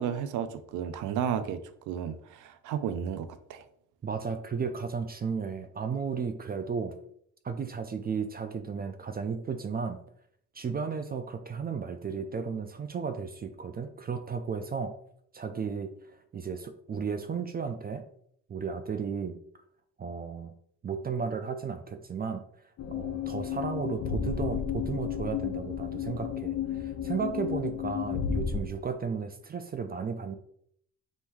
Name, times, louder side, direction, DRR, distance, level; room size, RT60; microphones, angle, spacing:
voice 1, 0.0-3.6, right 8 dB, 80° right, 11 dB, 0.5 m, -33 dB
voice 2, 4.0-7.0 7.4-10.0 10.5-15.0 15.3-15.9 16.3-18.0 18.5-19.4 20.0-20.5 20.8-22.4 22.9-30.4, right 5 dB, 30° right, 8 dB, 0.4 m, -34 dB
sound 1, 22.8-28.6, left 8 dB, 60° left, 0.7 m, -32 dB
3.7 x 2.6 x 4.5 m, 0.68 s
cardioid pair, 90°, 30 cm